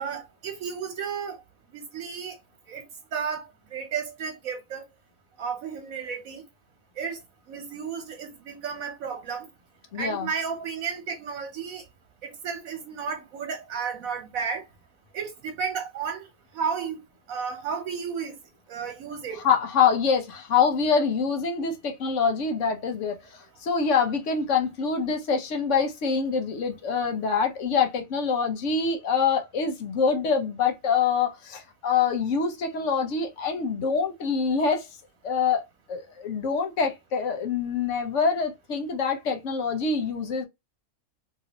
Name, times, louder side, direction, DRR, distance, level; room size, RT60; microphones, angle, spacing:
voice 1, 0.0-1.4 1.7-2.4 2.7-2.8 3.1-3.4 3.7-4.8 5.4-6.4 7.0-7.2 7.5-9.5 10.0-11.8 12.2-14.6 15.1-16.3 16.5-17.0 17.3-18.3 18.7-19.4, right 6 dB, 80° right, 1.2 m, -32 dB
voice 2, 9.9-10.3 19.4-34.9 35.2-40.5, left 5 dB, 65° left, 1.1 m, -25 dB
3.0 x 2.6 x 2.8 m
omnidirectional pair, 1.4 m